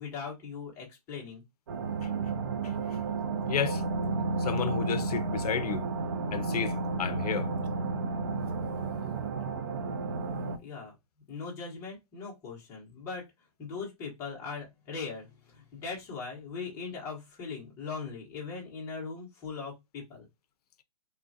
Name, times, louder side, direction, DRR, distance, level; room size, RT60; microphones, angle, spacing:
voice 1, 0.0-1.4 10.6-10.9 11.3-13.3 13.6-20.2, left 5 dB, 15° left, 0.9 m, -40 dB
sound 1, 1.7-10.6, right 3 dB, 35° right, 0.4 m, -32 dB
voice 2, 2.6-3.0 3.5-3.8 4.4-5.9 6.3-7.5, left 9 dB, 80° left, 0.5 m, -32 dB
3.1 x 2.4 x 2.6 m
hypercardioid pair, 170°, 20 cm